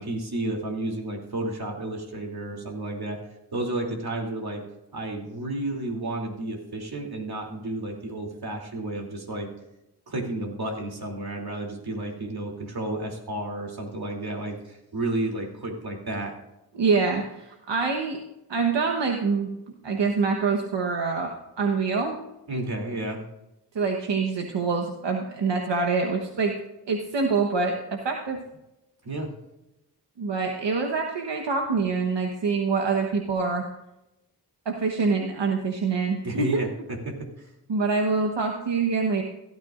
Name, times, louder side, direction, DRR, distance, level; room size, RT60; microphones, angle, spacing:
voice 1, 0.0-3.2 3.5-4.6 4.9-9.5 10.1-16.4 22.5-23.2 29.0-29.3 36.2-37.5, right 2 dB, 60° right, 1 dB, 3.0 m, -31 dB
voice 2, 16.7-18.2 18.5-19.5 19.8-22.1 23.7-26.5 26.9-28.4 30.2-33.6 34.6-36.6 37.7-39.2, right 4 dB, 80° right, 2 dB, 1.2 m, -25 dB
16.5 x 12.5 x 2.5 m, 0.93 s
cardioid pair, 65°, 42 cm